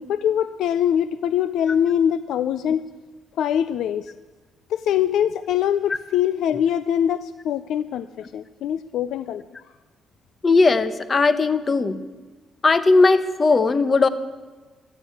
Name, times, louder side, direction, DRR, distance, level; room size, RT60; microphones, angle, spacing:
voice 1, 0.0-2.8 3.4-4.1 4.7-9.4, left 9 dB, 80° left, 14 dB, 0.4 m, -23 dB
voice 2, 10.4-12.0 12.6-14.1, left 3 dB, 35° left, 13 dB, 1.0 m, -18 dB
13.0 x 11.0 x 8.4 m, 1.3 s
cardioid pair, 90°, 0 cm